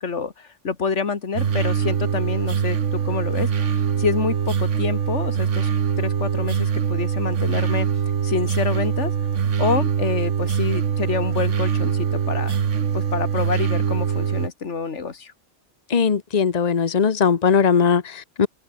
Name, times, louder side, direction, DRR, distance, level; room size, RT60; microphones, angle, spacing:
voice 1, 0.0-3.5 4.0-5.7 6.0-7.9 8.2-9.1 9.6-12.6 12.9-15.3, left 5 dB, 75° left, 2.2 m, -27 dB
sound 1, 1.3-14.5, right 7 dB, 85° right, 1.6 m, -23 dB
voice 2, 15.9-18.5, left 6 dB, 35° left, 1.1 m, -19 dB
open air
omnidirectional pair, 1.2 m